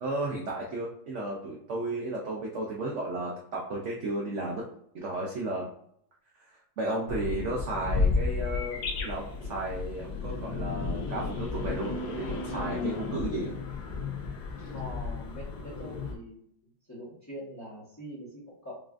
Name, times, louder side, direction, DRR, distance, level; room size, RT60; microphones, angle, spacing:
voice 1, 0.0-4.6 4.9-5.7 6.8-13.5, right 2 dB, 75° right, -2 dB, 0.6 m, -33 dB
sound 1, 7.1-16.1, left 4 dB, 65° left, 1.3 m, -33 dB
voice 2, 14.7-16.5 16.9-18.8, equal, 10° left, -7 dB, 0.9 m, -43 dB
5.2 x 2.5 x 2.4 m, 0.68 s
omnidirectional pair, 2.0 m